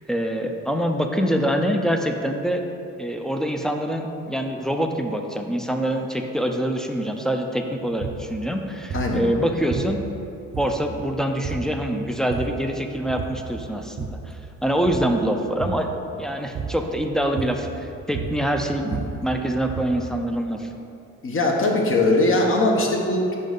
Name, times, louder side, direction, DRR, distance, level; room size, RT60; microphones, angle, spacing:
voice 1, 0.1-2.6 3.0-10.0 10.6-14.3 14.6-15.9 16.2-20.7, equal, ahead, 3 dB, 0.4 m, -25 dB
sound 1, 7.9-8.3 8.9-9.2 9.7-10.2 10.5-11.0 11.4-11.7 12.1-12.7 13.1-13.5 13.8-14.3 14.7-15.1 15.6-15.9 16.6-16.9 17.4-17.7 18.0-20.1, right 5 dB, 45° right, 0.6 m, -32 dB
voice 2, 21.2-23.3, left 2 dB, 45° left, 0 dB, 0.9 m, -20 dB
5.3 x 5.3 x 3.8 m, 2.7 s
cardioid pair, 90°, 30 cm